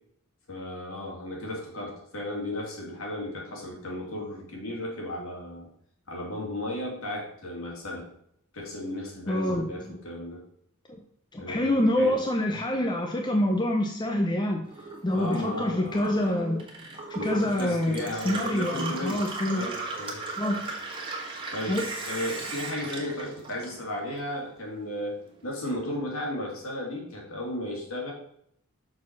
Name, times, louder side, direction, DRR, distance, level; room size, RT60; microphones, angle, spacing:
voice 1, 0.5-5.7 6.1-8.1 8.5-10.4 11.4-12.1 15.1-16.1 17.2-19.3 19.5-20.2 21.5-28.1, left 1 dB, 65° left, -1 dB, 2.6 m, -35 dB
voice 2, 9.3-9.9 11.3-14.6 15.0-16.7 17.2-19.7 20.4-20.6 21.7-21.8, left 1 dB, 20° left, 2 dB, 0.6 m, -26 dB
Gurgling / Water tap faucet / Sink (filling or washing), 14.6-24.2 24.5-25.4, right 3 dB, 25° right, 1.6 m, -37 dB
6.4 x 4.9 x 5.9 m, 0.69 s
head